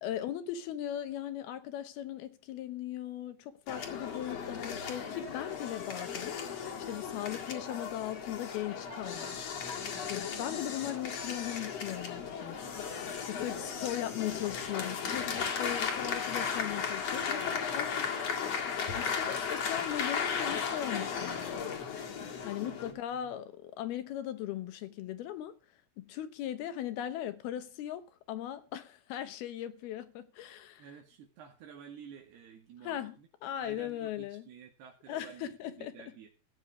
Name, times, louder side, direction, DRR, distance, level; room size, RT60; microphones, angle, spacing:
voice 1, 0.0-9.4 9.9-18.5 18.9-21.8 22.5-25.6 26.0-30.8 32.8-33.2 33.4-34.5 35.1-36.0, left 12 dB, 75° left, 2.9 m, -39 dB
sound 1, 3.7-22.9, left 6 dB, 45° left, 2.6 m, -36 dB
voice 2, 13.4-13.8 22.6-23.3 30.8-33.3 33.6-36.3, right 7 dB, 75° right, 4.1 m, -51 dB
15.5 x 9.8 x 4.8 m
omnidirectional pair, 4.8 m